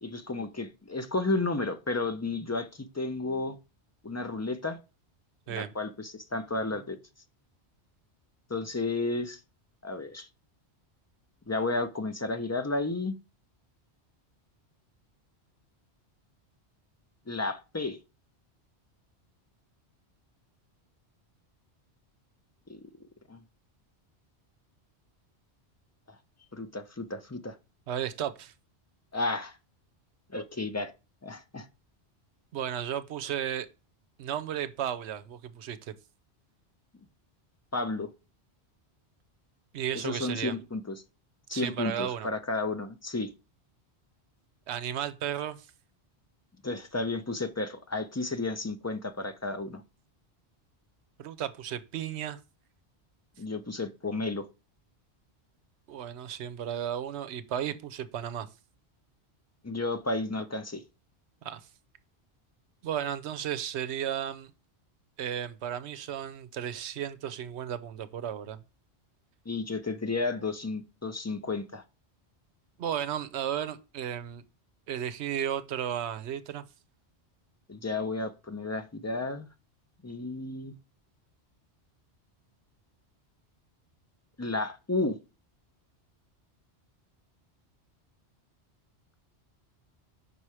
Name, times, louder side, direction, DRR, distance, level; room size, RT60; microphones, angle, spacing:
voice 1, 0.0-3.6 4.0-4.8 5.5-7.0 8.5-9.4 9.8-10.3 11.5-13.2 17.3-18.0 22.7-22.9 23.3-23.4 26.5-27.6 29.1-29.6 30.3-30.9 31.2-31.7 37.7-38.1 39.9-41.0 41.5-43.3 46.6-49.8 53.4-54.5 59.6-60.8 69.5-71.8 77.7-79.5 80.0-80.8 84.4-85.2, left 3 dB, 25° left, 0.3 m, -32 dB
voice 2, 27.9-28.5 32.5-33.7 34.2-36.0 39.7-40.6 41.5-42.3 44.7-45.7 51.2-52.4 55.9-58.5 61.4-61.6 62.8-64.5 65.2-68.6 72.8-74.4 74.9-76.6, right 9 dB, 80° right, 0.9 m, -34 dB
5.5 x 4.3 x 4.7 m
omnidirectional pair, 1.1 m